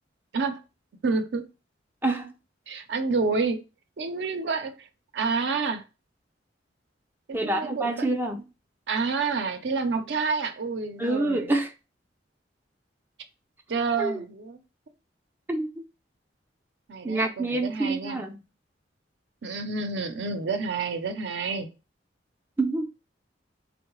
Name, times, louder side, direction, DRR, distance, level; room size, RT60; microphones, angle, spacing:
voice 1, 1.0-1.4 2.7-3.6 4.0-4.9 5.1-5.8 7.3-7.9 8.9-11.5 13.7-14.6 16.9-18.2 19.4-21.7, right 4 dB, 70° right, 0.5 m, -28 dB
voice 2, 2.0-2.3 7.3-8.4 11.0-11.7 14.0-14.2 15.5-15.7 17.0-18.4 22.6-22.9, right 2 dB, 10° right, 0.3 m, -27 dB
3.6 x 2.1 x 3.0 m
head